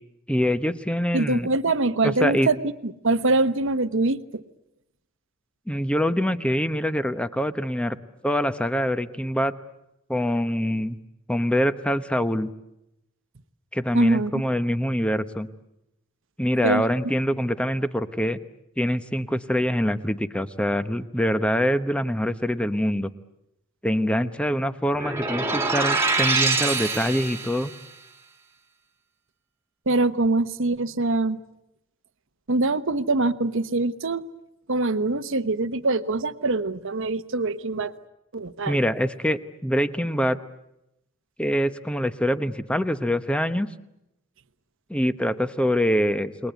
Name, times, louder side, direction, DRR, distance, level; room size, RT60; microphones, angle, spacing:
voice 1, 0.3-1.5 2.0-2.5 5.7-8.0 8.2-9.5 10.1-11.0 11.3-12.5 13.7-15.5 16.4-18.4 18.8-23.1 23.8-27.7 38.7-40.4 41.4-43.7 44.9-46.5, equal, 5° left, 11 dB, 0.9 m, -24 dB
voice 2, 1.1-2.6 2.8-4.4 13.9-14.4 16.6-16.8 29.9-31.4 32.5-34.2 34.7-37.9 38.3-38.8, right 2 dB, 60° right, 12 dB, 1.1 m, -24 dB
sound 1, 24.9-27.8, right 3 dB, 10° right, 2.1 m, -24 dB
29.0 x 21.5 x 8.2 m, 0.85 s
head